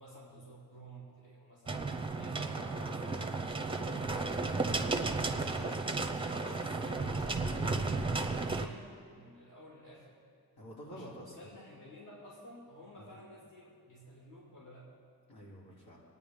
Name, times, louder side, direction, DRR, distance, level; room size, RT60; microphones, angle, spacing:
voice 1, 0.0-4.1 5.1-10.2 10.9-14.9, equal, 55° left, -6 dB, 2.6 m, -53 dB
sound 1, 1.7-8.7, right 3 dB, 15° right, 0.6 m, -34 dB
voice 2, 4.5-5.4 10.5-11.3 13.0-13.1 15.3-16.0, equal, 80° left, -5 dB, 3.2 m, -49 dB
23.0 x 9.4 x 3.7 m, 2.2 s
wide cardioid pair, 165°, 37 cm